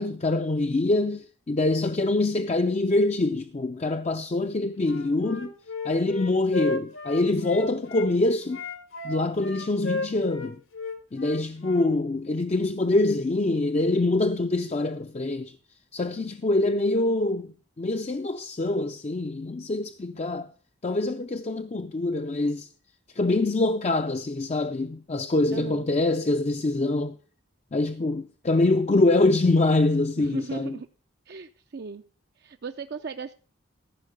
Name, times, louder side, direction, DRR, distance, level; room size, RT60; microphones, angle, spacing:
voice 1, 0.0-5.5 5.8-8.6 9.0-10.6 11.1-15.6 15.9-20.5 20.8-22.7 23.1-27.2 27.7-30.8, left 2 dB, 30° left, 0.4 m, -25 dB
Wind instrument woodwind instrument, 4.8-8.1 8.5-11.9, left 3 dB, 85° left, 1.9 m, -34 dB
voice 2, 25.5-25.9 30.2-30.9 31.3-32.0 32.4-33.3, right 5 dB, 50° right, 0.5 m, -37 dB
14.5 x 5.6 x 6.6 m
head